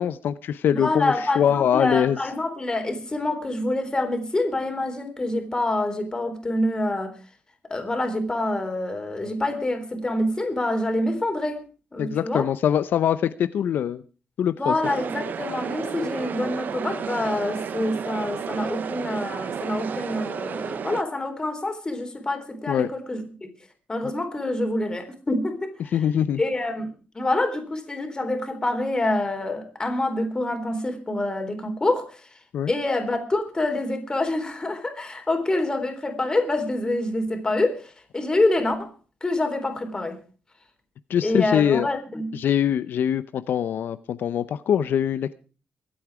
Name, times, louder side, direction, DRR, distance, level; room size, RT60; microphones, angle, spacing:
voice 1, 0.0-2.2 12.0-14.0 14.4-14.7 22.7-22.9 25.9-26.4 32.5-32.7 41.1-41.9 42.3-45.3, left 9 dB, 80° left, 13 dB, 0.6 m, -23 dB
voice 2, 0.7-7.2 7.7-11.6 11.9-12.5 14.6-23.5 23.9-26.0 26.4-32.2 32.7-38.9 39.2-40.2 41.2-42.3, left 2 dB, 25° left, 5 dB, 3.8 m, -26 dB
sound 1, 14.8-21.0, right 7 dB, 60° right, 0.8 m, -32 dB
23.5 x 8.7 x 4.8 m, 0.37 s
cardioid pair, 110°, 3 cm